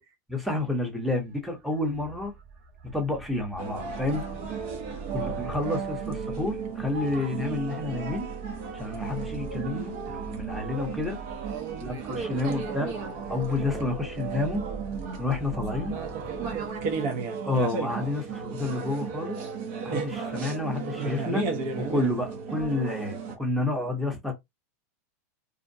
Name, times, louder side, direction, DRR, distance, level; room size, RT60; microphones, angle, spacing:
voice 1, 0.3-2.3 2.9-4.5 5.1-8.3 8.7-11.3 11.8-12.9 13.3-14.6 15.2-15.9 17.4-19.4 19.8-21.5 21.8-24.3, left 2 dB, ahead, 0.8 m, -30 dB
sound 1, 1.1-16.7, right 5 dB, 85° right, 0.8 m, -44 dB
sound 2, 3.6-23.3, right 5 dB, 55° right, 0.8 m, -34 dB
voice 2, 11.4-13.0 15.7-17.5, right 10 dB, 35° right, 0.3 m, -41 dB
2.5 x 2.1 x 2.6 m
supercardioid pair, 140°, 8 cm